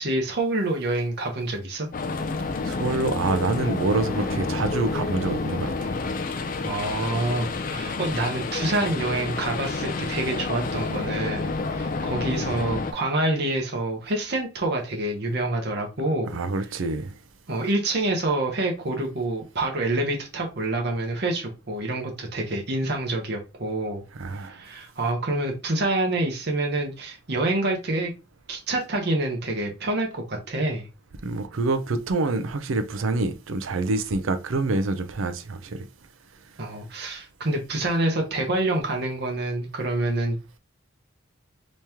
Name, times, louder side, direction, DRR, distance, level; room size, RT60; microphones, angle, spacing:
voice 1, 0.0-1.9 6.6-16.3 17.5-24.0 24.4-28.1 28.5-30.9 36.6-40.4, right 2 dB, 50° right, 0.9 m, -27 dB
sound 1, 1.9-12.9, left 3 dB, 40° left, 0.4 m, -29 dB
voice 2, 2.6-5.9 16.3-17.1 24.1-24.6 31.2-35.9, right 3 dB, 75° right, 0.5 m, -26 dB
3.1 x 2.9 x 3.4 m
head